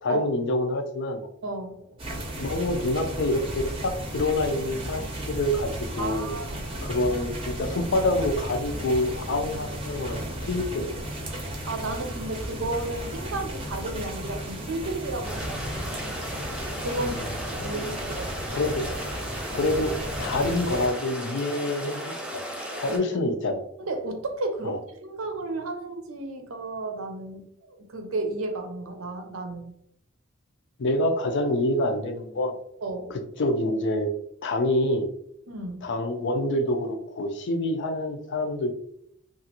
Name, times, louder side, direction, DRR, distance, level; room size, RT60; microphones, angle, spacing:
voice 1, 0.0-1.3 2.4-5.7 6.0-6.3 6.8-10.2 10.5-11.1 17.0-17.8 18.5-18.8 19.5-19.9 20.2-22.4 22.8-23.6 24.6-24.8 30.8-32.5 33.1-34.1 34.4-35.1 35.8-38.7, left 1 dB, 60° left, 6 dB, 0.5 m, -27 dB
voice 2, 1.4-2.0 6.0-6.6 11.7-15.9 16.8-18.4 22.9-23.2 23.8-29.7 32.8-33.1 35.5-35.8, right 2 dB, 75° right, 5 dB, 0.6 m, -33 dB
sound 1, 2.0-20.9, right 1 dB, 25° right, 0.6 m, -34 dB
sound 2, 15.2-23.0, equal, 5° right, 0.9 m, -36 dB
2.9 x 2.4 x 2.9 m, 0.71 s
head